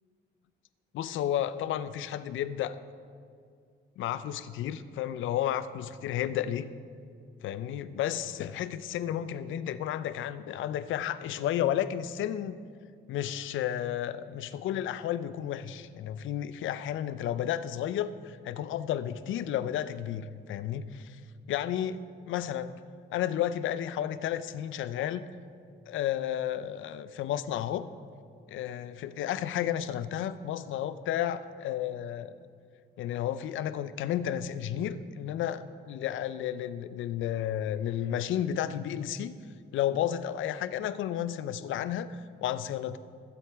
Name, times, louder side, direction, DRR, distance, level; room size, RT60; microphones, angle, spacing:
voice 1, 0.9-2.8 4.0-6.7 7.4-12.6 13.1-21.2 21.5-22.8 23.1-25.3 25.9-27.9 28.5-32.3 33.0-39.3 39.7-43.0, left 11 dB, 75° left, 13 dB, 0.5 m, -32 dB
15.5 x 7.9 x 3.5 m, 2.2 s
cardioid pair, 90°, 20 cm